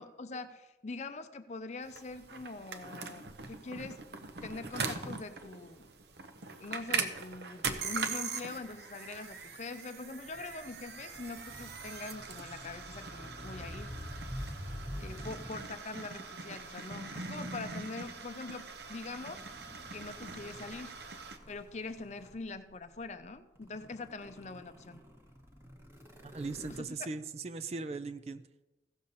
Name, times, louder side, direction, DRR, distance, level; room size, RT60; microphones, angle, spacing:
voice 1, 0.0-4.0 4.4-5.9 6.6-13.9 15.0-19.5 19.9-21.0 21.5-25.0 26.7-26.9, left 3 dB, 40° left, 10 dB, 0.6 m, -43 dB
sound 1, 1.9-21.4, right 4 dB, 65° right, 0.8 m, -41 dB
sound 2, 10.2-15.8 16.6-16.8 18.7-22.5 23.1-23.2 23.6-26.8, equal, 15° right, 1.1 m, -47 dB
voice 2, 26.2-28.4, right 3 dB, 35° right, 11 dB, 0.4 m, -39 dB
15.5 x 6.8 x 4.0 m, 1.1 s
head